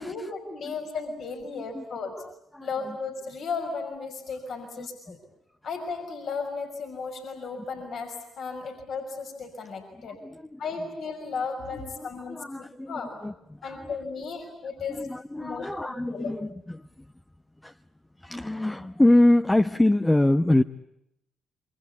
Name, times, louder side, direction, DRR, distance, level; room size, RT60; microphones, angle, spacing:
voice 1, 0.0-2.2 2.6-5.2 5.6-10.2 10.6-13.2 13.6-15.1 15.4-16.3, left 4 dB, 65° left, 3 dB, 5.9 m, -35 dB
voice 2, 2.2-3.0 4.8-4.9 10.0-10.6 12.0-13.9 14.9-17.1 17.6-17.8 18.2-20.6, left 1 dB, 15° left, 9 dB, 1.0 m, -25 dB
27.0 x 25.0 x 8.5 m, 0.82 s
hypercardioid pair, 50°, 0 cm